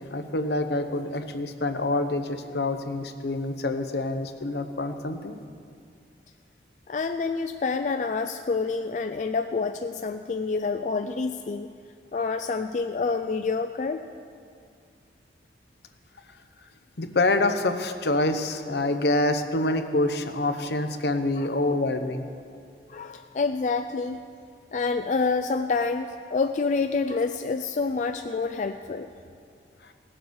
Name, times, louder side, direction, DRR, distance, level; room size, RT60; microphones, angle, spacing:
voice 1, 0.1-5.3 17.0-22.3, left 2 dB, 75° left, 7 dB, 0.9 m, -26 dB
voice 2, 6.9-11.7 12.1-14.0 21.4-21.5 22.9-24.2 24.7-29.1, left 4 dB, 45° left, 7 dB, 0.3 m, -27 dB
17.5 x 7.8 x 6.3 m, 2.3 s
head